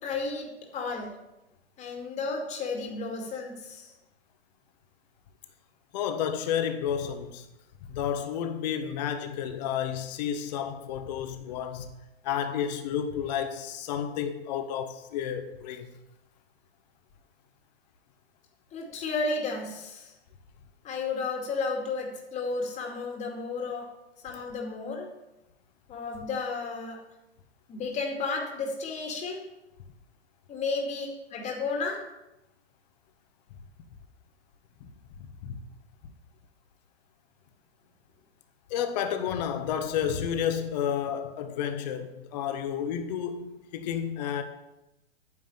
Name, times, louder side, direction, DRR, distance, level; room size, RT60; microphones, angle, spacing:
voice 1, 0.0-0.5 0.7-1.1 1.8-3.9 18.7-20.1 20.8-23.9 24.2-25.1 25.9-27.0 27.7-29.4 30.5-32.0, left 4 dB, 20° left, 2.3 m, -32 dB
voice 2, 5.9-7.5 7.9-11.9 12.2-15.9 34.8-34.9 35.2-35.6 38.7-44.4, left 8 dB, 40° left, 1.5 m, -31 dB
9.9 x 7.1 x 8.8 m
figure-of-eight pair, 110°, 32 cm